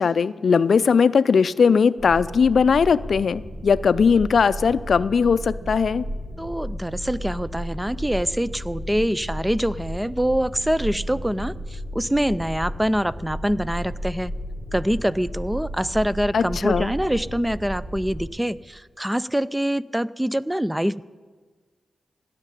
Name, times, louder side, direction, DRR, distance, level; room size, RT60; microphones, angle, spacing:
voice 1, 0.0-6.0 16.3-16.9, left 6 dB, 70° left, 16 dB, 0.4 m, -19 dB
sound 1, 2.0-18.2, equal, 75° right, 4.6 m, -34 dB
voice 2, 6.4-14.3 14.7-21.0, equal, 10° right, 17 dB, 0.4 m, -25 dB
17.0 x 6.6 x 9.8 m, 1.4 s
cardioid pair, 55°, 0 cm